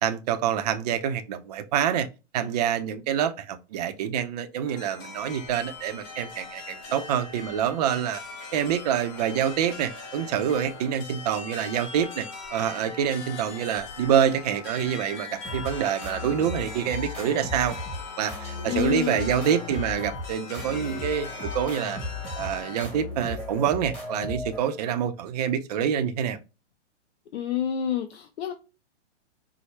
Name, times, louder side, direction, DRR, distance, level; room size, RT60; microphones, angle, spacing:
voice 1, 0.0-2.1 2.3-8.2 8.5-17.8 18.2-22.0 22.3-26.4, right 9 dB, 35° right, 0.4 m, -26 dB
sound 1, 4.7-22.9, left 4 dB, 20° left, 0.5 m, -41 dB
sound 2, 15.4-25.0, left 2 dB, 5° left, 0.8 m, -36 dB
voice 2, 18.6-19.3 20.8-21.0 27.3-28.5, left 10 dB, 65° left, 0.6 m, -29 dB
4.5 x 2.0 x 3.1 m
hypercardioid pair, 135°, 36 cm